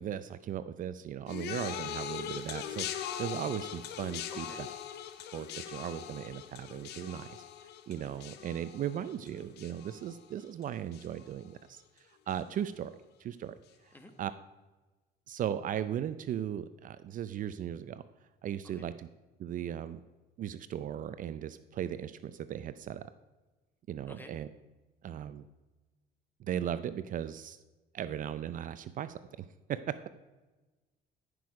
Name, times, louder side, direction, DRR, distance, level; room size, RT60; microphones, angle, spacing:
voice 1, 0.0-4.7 5.3-7.3 7.9-11.8 12.3-12.9 13.2-13.6 14.2-14.3 15.3-18.0 18.4-19.1 19.4-20.0 20.4-23.1 23.9-24.5 25.0-25.4 26.5-27.6 27.9-29.9, right 10 dB, 50° right, 13 dB, 0.5 m, -37 dB
sound 1, 1.3-10.6 10.9-11.5 12.3-12.4, left 10 dB, 80° left, 0.8 m, -41 dB
voice 2, 4.3-4.6 13.9-14.1 18.7-18.9 24.1-24.3, left 1 dB, 10° left, 7 dB, 1.4 m, -51 dB
14.0 x 6.3 x 4.8 m, 1.2 s
cardioid pair, 110°, 17 cm